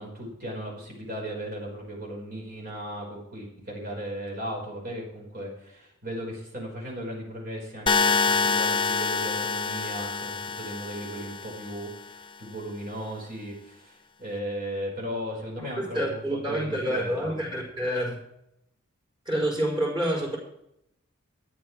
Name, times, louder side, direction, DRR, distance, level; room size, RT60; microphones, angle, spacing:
voice 1, 0.0-16.2 16.5-17.3, equal, 45° right, -2 dB, 5.1 m, -36 dB
sound 1, 7.9-11.9, left 4 dB, 25° left, 0.6 m, -26 dB
voice 2, 15.6-18.2 19.3-20.4, right 1 dB, 25° right, 0 dB, 5.2 m, -28 dB
14.0 x 10.5 x 4.8 m, 0.77 s
head